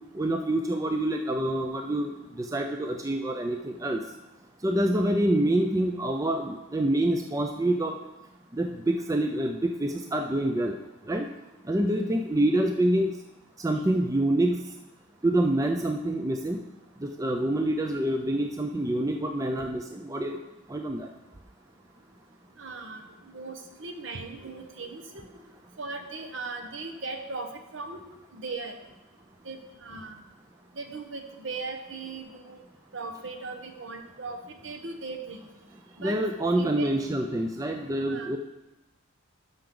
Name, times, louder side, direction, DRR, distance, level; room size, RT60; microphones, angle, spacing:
voice 1, 0.1-4.0 4.6-8.0 8.5-10.8 11.1-11.3 11.7-13.1 13.6-14.6 15.2-16.6 17.0-20.4 20.7-21.1 36.0-38.4, right 1 dB, 15° right, 4 dB, 0.4 m, -26 dB
voice 2, 22.6-25.2 25.8-28.0 28.3-28.7 29.4-30.2 30.8-32.6 32.9-35.4 36.0-36.2 36.5-36.9 38.1-38.4, right 3 dB, 65° right, 5 dB, 1.0 m, -38 dB
12.0 x 5.8 x 3.8 m, 1.0 s
head